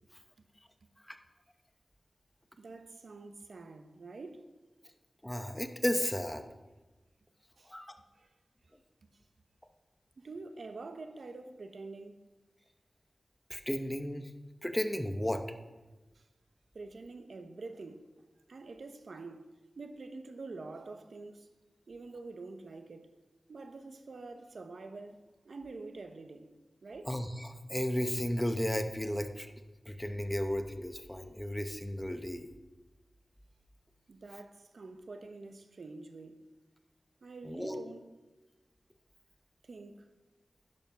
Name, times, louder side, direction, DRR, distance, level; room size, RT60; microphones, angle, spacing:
voice 1, 2.6-4.5 7.6-7.7 8.2-8.3 10.2-12.2 16.1-16.2 16.7-18.1 18.5-19.5 19.8-21.5 21.9-23.1 23.5-26.5 26.8-27.1 34.1-36.4 37.2-38.0 39.6-40.1, right 3 dB, 75° right, 0.8 m, -46 dB
voice 2, 5.2-6.4 7.7-7.9 13.5-14.3 14.6-15.4 27.1-29.5 29.9-32.5 37.4-37.8, equal, 10° left, 0.8 m, -34 dB
11.0 x 7.1 x 5.7 m
wide cardioid pair, 90°, 0 cm